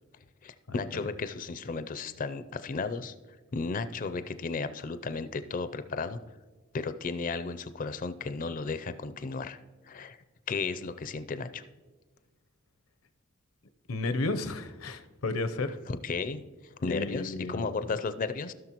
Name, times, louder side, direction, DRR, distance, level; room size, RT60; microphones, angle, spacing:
voice 1, 0.4-3.1 3.5-6.2 6.7-9.6 9.9-10.2 10.5-11.6 15.9-18.5, left 4 dB, 40° left, 12 dB, 0.4 m, -34 dB
voice 2, 13.9-15.7 16.9-17.7, left 2 dB, 80° left, 9 dB, 0.7 m, -32 dB
16.0 x 6.4 x 3.0 m, 1.3 s
head